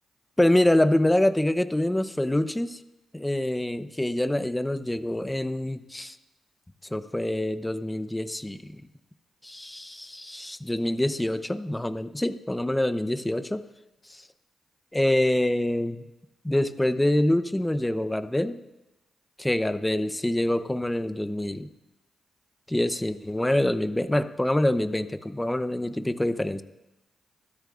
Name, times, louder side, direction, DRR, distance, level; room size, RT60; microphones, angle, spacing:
voice 1, 0.4-2.8 3.1-6.1 6.9-8.8 9.4-13.6 14.1-14.2 14.9-16.1 16.4-18.6 19.4-21.7 22.7-26.6, left 1 dB, 10° left, 11 dB, 0.8 m, -25 dB
24.0 x 13.0 x 2.5 m, 0.97 s
supercardioid pair, 55°, 0 cm